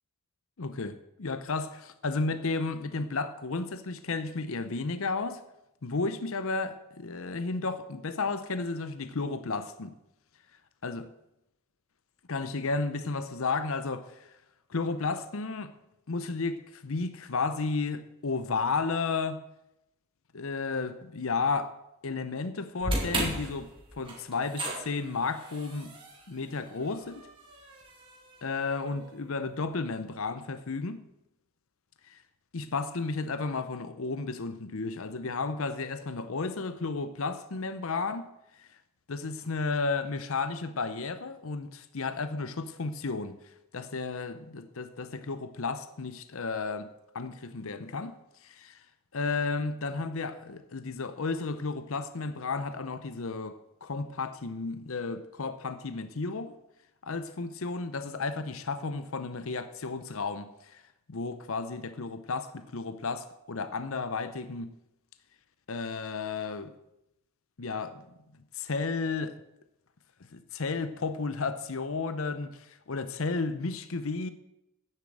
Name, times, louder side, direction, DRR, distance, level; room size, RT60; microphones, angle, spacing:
voice 1, 0.6-5.4 5.8-10.0 10.8-11.0 12.3-14.3 14.7-15.7 16.1-19.4 20.3-21.8 22.0-23.7 24.0-25.9 26.3-27.3 28.4-31.0 32.1-32.2 32.5-38.3 38.6-38.7 39.1-43.4 43.7-48.2 48.4-48.8 49.1-56.5 57.0-60.8 61.1-64.7 65.7-66.7 67.6-68.1 68.5-69.4 70.3-74.3, left 4 dB, 65° left, 0.7 m, -33 dB
sound 1, 22.8-29.1, right 1 dB, 20° right, 2.4 m, -36 dB
9.6 x 7.5 x 7.7 m
head